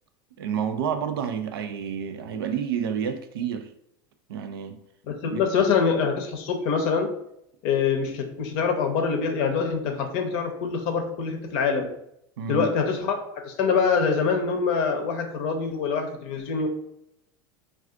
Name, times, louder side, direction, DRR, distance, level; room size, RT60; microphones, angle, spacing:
voice 1, 0.4-3.7 4.3-4.8 5.3-5.4 12.4-12.7, right 7 dB, 85° right, 0.4 m, -29 dB
voice 2, 5.1-7.1 7.6-11.9 12.5-16.7, left 5 dB, 60° left, 0.6 m, -25 dB
2.3 x 2.3 x 3.6 m
hypercardioid pair, 90°, 12 cm